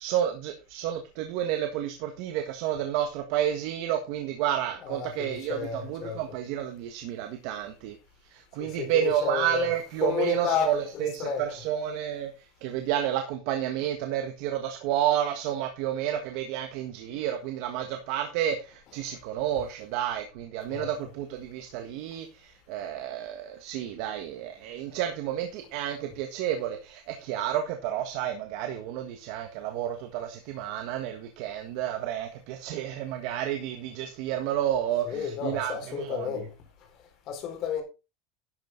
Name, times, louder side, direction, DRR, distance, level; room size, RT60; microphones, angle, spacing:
voice 1, 0.0-7.9 8.3-12.3 12.6-36.4, right 10 dB, 55° right, 1.5 m, -30 dB
voice 2, 4.8-6.2 8.6-9.7 10.0-11.4 20.7-20.9 35.0-36.5 37.3-37.8, left 8 dB, 40° left, 3.9 m, -31 dB
11.5 x 7.7 x 3.9 m
cardioid pair, 175°, 0 cm